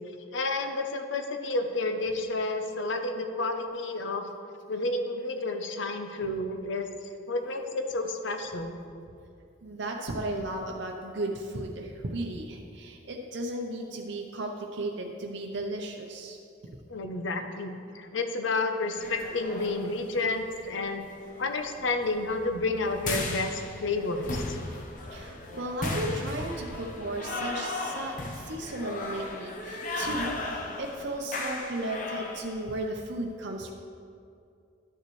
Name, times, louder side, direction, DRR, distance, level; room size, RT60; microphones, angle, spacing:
voice 1, 0.3-4.3 4.7-6.9 7.3-8.8 16.9-21.1 21.4-24.6, left 2 dB, 75° left, 6 dB, 0.7 m, -30 dB
voice 2, 9.6-16.4 16.6-16.8 25.1-33.7, right 1 dB, 65° right, 1 dB, 0.7 m, -35 dB
sound 1, 19.0-32.8, left 2 dB, 40° left, 0.7 m, -36 dB
11.5 x 6.7 x 3.2 m, 2.4 s
head